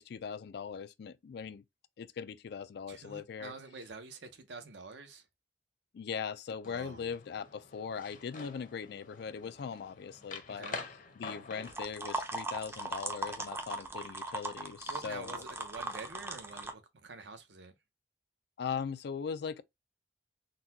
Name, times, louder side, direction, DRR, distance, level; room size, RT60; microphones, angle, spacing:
voice 1, 0.0-1.6 2.0-3.5 5.9-10.7 11.2-15.4 18.6-19.6, left 6 dB, 65° left, 0.3 m, -40 dB
voice 2, 2.9-5.3 6.7-7.1 10.5-10.8 14.9-17.7, right 3 dB, 75° right, 0.8 m, -47 dB
sound 1, 6.6-11.9, left 4 dB, 50° left, 0.7 m, -47 dB
sound 2, 11.6-16.7, right 2 dB, 15° right, 0.5 m, -38 dB
3.9 x 2.2 x 2.7 m
head